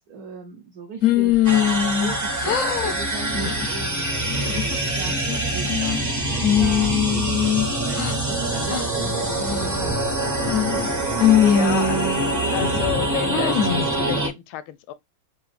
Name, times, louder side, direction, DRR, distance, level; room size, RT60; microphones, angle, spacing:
voice 1, 0.1-1.4 2.0-5.2 5.5-11.4, right 4 dB, 70° right, 0.9 m, -39 dB
sound 1, 1.0-2.2 2.4-2.9 3.3-3.7 4.2-4.8 5.3-6.0 6.4-8.2 8.7-8.8 9.4-9.8 10.4-10.9 11.2-12.8 13.3-13.9, left 8 dB, 65° left, 0.8 m, -22 dB
sound 2, 1.4-14.3, right 2 dB, 25° right, 0.3 m, -25 dB
sound 3, 6.2-7.8 9.2-10.9 12.4-14.0, left 3 dB, 40° left, 0.4 m, -35 dB
voice 2, 11.4-12.0 12.5-14.9, left 13 dB, 80° left, 1.4 m, -30 dB
6.8 x 2.4 x 2.5 m
omnidirectional pair, 2.3 m